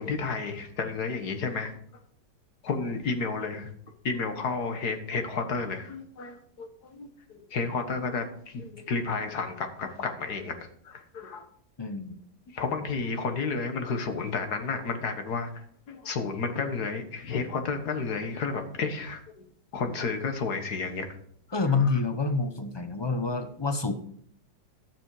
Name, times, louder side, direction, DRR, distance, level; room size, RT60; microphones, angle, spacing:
voice 1, 0.0-1.7 2.6-3.7 4.0-10.6 10.8-11.5 12.5-19.4 19.7-21.1 21.6-21.9, left 4 dB, 65° left, 6 dB, 1.8 m, -32 dB
voice 2, 11.8-12.2 21.5-23.9, left 4 dB, 40° left, 8 dB, 0.3 m, -27 dB
12.0 x 7.5 x 4.8 m, 0.66 s
omnidirectional pair, 1.9 m